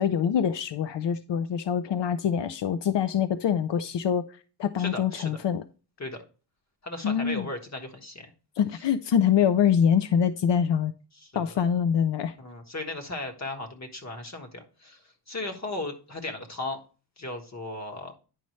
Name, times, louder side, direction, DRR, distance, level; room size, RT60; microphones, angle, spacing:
voice 1, 0.0-4.2 4.6-5.6 7.0-7.5 8.6-10.9 11.3-12.3, left 8 dB, 85° left, 0.6 m, -24 dB
voice 2, 4.8-5.4 6.0-6.2 6.8-8.3 8.7-8.8 11.1-11.5 12.4-16.8 17.2-18.1, left 2 dB, 40° left, 1.5 m, -36 dB
10.0 x 5.5 x 3.1 m
wide cardioid pair, 145°, 41 cm